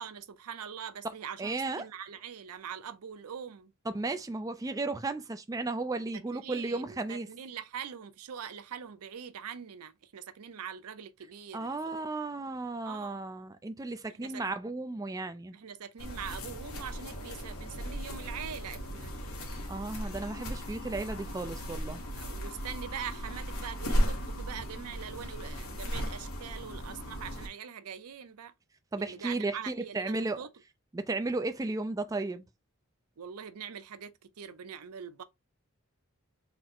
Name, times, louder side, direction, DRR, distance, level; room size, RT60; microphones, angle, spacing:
voice 1, 0.0-3.7 6.1-12.0 12.8-13.3 14.1-14.4 15.5-19.1 22.2-28.5 29.0-30.5 33.2-35.2, right 8 dB, 85° right, 0.5 m, -43 dB
voice 2, 1.4-1.8 3.9-7.3 11.5-15.5 19.7-22.0 28.9-30.4 30.9-32.4, right 3 dB, 15° right, 0.3 m, -34 dB
sound 1, 16.0-27.5, equal, 70° left, 1.4 m, -36 dB
3.9 x 2.0 x 4.3 m
head